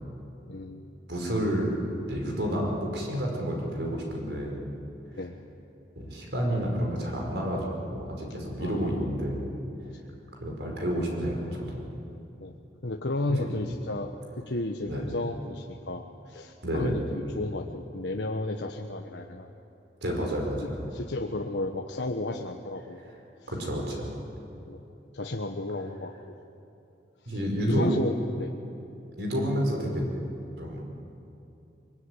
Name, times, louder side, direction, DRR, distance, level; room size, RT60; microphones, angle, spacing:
voice 1, 0.5-0.8 5.1-5.4 8.6-9.0 9.8-10.0 12.4-12.5 12.8-19.5 20.9-23.0 23.4-23.5 24.6-24.8 25.1-26.1 27.2-28.5, left 2 dB, 75° left, 2 dB, 1.3 m, -33 dB
voice 2, 1.1-1.8 2.0-4.6 6.0-9.5 10.4-11.8 13.3-13.4 14.9-15.1 16.6-17.0 20.0-20.8 23.5-24.1 27.3-27.9 29.2-30.1 30.6-30.8, equal, 65° right, 0 dB, 5.4 m, -30 dB
23.5 x 23.5 x 10.0 m, 2.9 s
head